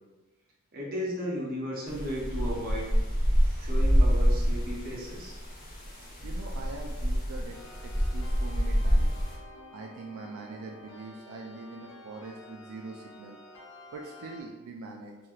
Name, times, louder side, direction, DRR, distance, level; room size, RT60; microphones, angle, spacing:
voice 1, 0.7-2.9 3.4-5.4, equal, 40° right, -4 dB, 0.8 m, -35 dB
sound 1, 1.9-9.3, equal, 40° left, 0.9 m, -27 dB
voice 2, 6.2-9.2 9.7-13.4 13.9-15.2, right 3 dB, 75° right, 1 dB, 0.3 m, -43 dB
sound 2, 7.5-14.4, left 1 dB, 70° left, 0.7 m, -50 dB
3.0 x 2.9 x 2.3 m, 1.2 s
head